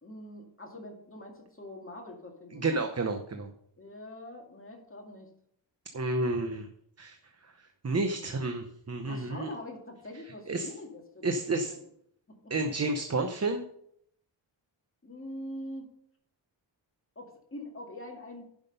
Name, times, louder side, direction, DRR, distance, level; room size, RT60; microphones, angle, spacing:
voice 1, 0.0-2.8 3.8-5.3 8.2-8.3 9.1-11.3 11.5-11.8 12.3-12.5 15.0-15.9 17.2-18.5, left 1 dB, 25° left, 1 dB, 2.2 m, -44 dB
voice 2, 2.5-3.5 5.9-6.7 7.0-7.2 7.4-9.5 10.5-10.7 11.2-11.7 12.5-13.6, right 2 dB, 35° right, 6 dB, 0.8 m, -31 dB
11.0 x 6.0 x 5.4 m, 0.68 s
wide cardioid pair, 115°, 47 cm